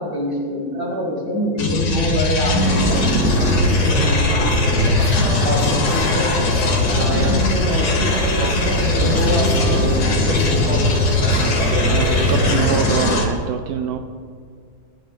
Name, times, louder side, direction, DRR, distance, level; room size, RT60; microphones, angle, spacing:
voice 1, 0.0-4.9 5.2-6.5 6.9-11.4, equal, 15° right, -7 dB, 3.4 m, -26 dB
sound 1, 1.6-13.3, left 2 dB, 65° left, 1.8 m, -20 dB
sound 2, 2.6-13.2, equal, 85° left, 4.7 m, -23 dB
voice 2, 7.0-7.5 11.3-11.6 11.9-14.0, right 8 dB, 75° right, 7 dB, 0.9 m, -25 dB
18.0 x 8.4 x 3.7 m, 2.1 s
omnidirectional pair, 2.1 m